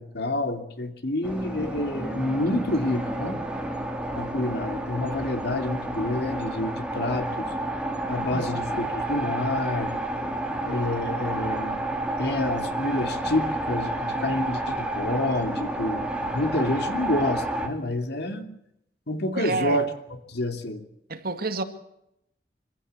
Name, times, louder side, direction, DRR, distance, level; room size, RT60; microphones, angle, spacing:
voice 1, 0.0-3.4 4.1-7.5 8.1-9.9 10.6-11.9 12.2-18.5 19.1-19.9 20.3-20.8, left 1 dB, 65° left, 2.8 m, -28 dB
sound 1, 1.2-17.7, right 1 dB, 5° right, 3.0 m, -30 dB
voice 2, 19.4-19.8 21.1-21.6, right 3 dB, 60° right, 2.2 m, -28 dB
25.0 x 15.5 x 8.2 m
head